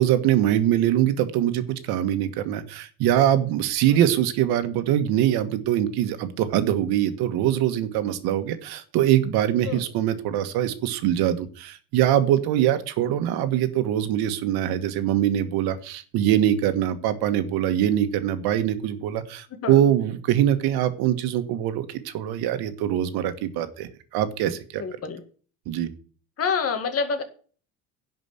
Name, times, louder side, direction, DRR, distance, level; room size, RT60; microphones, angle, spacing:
voice 1, 0.0-24.8 25.6-25.9, right 11 dB, 75° right, 10 dB, 1.5 m, -23 dB
voice 2, 24.8-25.2 26.4-27.2, left 5 dB, 40° left, 7 dB, 2.2 m, -27 dB
11.0 x 5.2 x 7.8 m, 0.41 s
cardioid pair, 135°, 38 cm